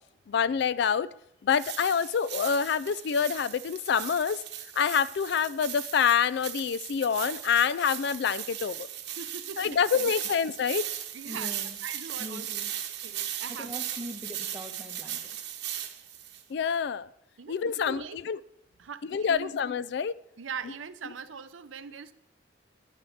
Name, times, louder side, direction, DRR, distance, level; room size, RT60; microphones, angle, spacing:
voice 1, 0.3-1.1 1.4-4.4 4.7-8.9 9.6-10.9 16.5-17.1 17.5-18.4 19.1-20.2, left 7 dB, 60° left, 0.3 m, -26 dB
sound 1, 1.5-16.4, right 11 dB, 60° right, 1.1 m, -38 dB
voice 2, 9.2-10.1 11.1-11.5 11.8-12.5 13.0-13.7 17.4-18.2 18.8-19.5 20.4-22.1, right 6 dB, 80° right, 0.6 m, -41 dB
voice 3, 11.2-11.8 12.2-12.7 13.5-15.4, equal, 10° right, 1.6 m, -42 dB
10.5 x 7.4 x 6.5 m
head